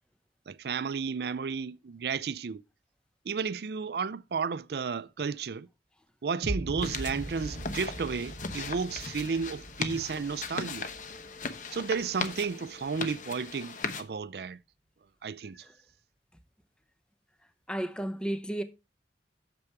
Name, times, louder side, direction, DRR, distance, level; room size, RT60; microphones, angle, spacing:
voice 1, 0.5-2.6 3.2-5.7 6.2-10.9 11.7-14.6 15.2-15.6, right 5 dB, 60° right, 0.4 m, -33 dB
sound 1, 6.4-12.4, right 1 dB, 45° right, 0.9 m, -41 dB
sound 2, 6.8-14.0, left 4 dB, 45° left, 0.9 m, -38 dB
voice 2, 17.7-18.6, right 1 dB, 5° left, 0.8 m, -32 dB
8.6 x 6.9 x 4.6 m
head